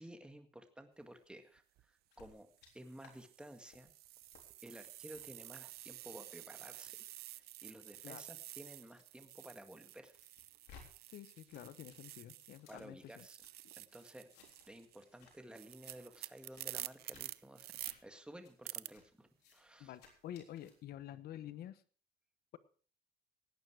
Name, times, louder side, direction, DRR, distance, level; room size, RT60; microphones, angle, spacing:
voice 1, 0.0-2.5 2.7-3.9 4.6-7.0 7.3-10.1 12.7-13.4 13.7-14.3 14.6-19.9, right 1 dB, 5° right, 7 dB, 1.9 m, -54 dB
sound 1, 1.6-1.8 2.6-12.7 13.0-17.9 18.6-18.9, right 16 dB, 70° right, 0.6 m, -50 dB
sound 2, 2.1-2.7 3.0-3.1 3.5-3.8 4.3-4.4 5.0-5.2 5.9-9.5 9.8-10.8 11.1-13.5 13.9-14.7 15.0-15.3 15.6-16.0 16.4-16.6 17.1-17.2 17.7-18.0 18.4-18.5 18.9-19.0 19.4-19.6 19.9-20.7, left 6 dB, 85° left, 3.7 m, -63 dB
voice 2, 11.1-13.3 19.8-21.8, left 12 dB, 65° left, 14 dB, 1.1 m, -49 dB
17.0 x 9.4 x 4.8 m, 0.43 s
cardioid pair, 110°, 17 cm